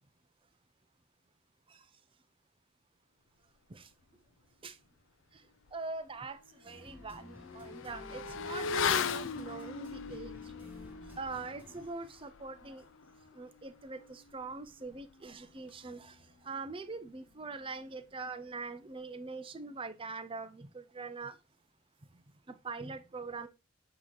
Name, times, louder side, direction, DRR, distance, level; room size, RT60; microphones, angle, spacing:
voice 1, 5.3-10.5 11.1-12.9 13.3-21.4 22.1-23.5, right 3 dB, 25° right, 0.5 m, -43 dB
Motorcycle / Accelerating revving vroom, 5.7-5.8 6.2-16.2 16.4-16.6, left 6 dB, 60° left, 0.5 m, -39 dB
sound 1, 6.6-11.8, left 1 dB, 10° right, 1.6 m, -52 dB
7.9 x 3.0 x 4.5 m
head